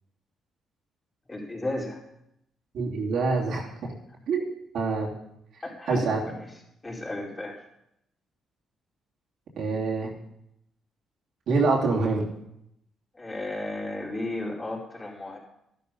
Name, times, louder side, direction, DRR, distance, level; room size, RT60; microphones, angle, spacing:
voice 1, 1.3-2.0 5.6-6.5 6.8-7.6 13.1-15.4, left 2 dB, 25° left, -3 dB, 4.6 m, -34 dB
voice 2, 2.7-3.9 4.3-4.4 4.7-5.1 5.9-6.2 9.6-10.1 11.5-12.3, right 4 dB, 70° right, -2 dB, 2.9 m, -25 dB
12.5 x 11.5 x 5.5 m, 0.80 s
cardioid pair, 90°, 0 cm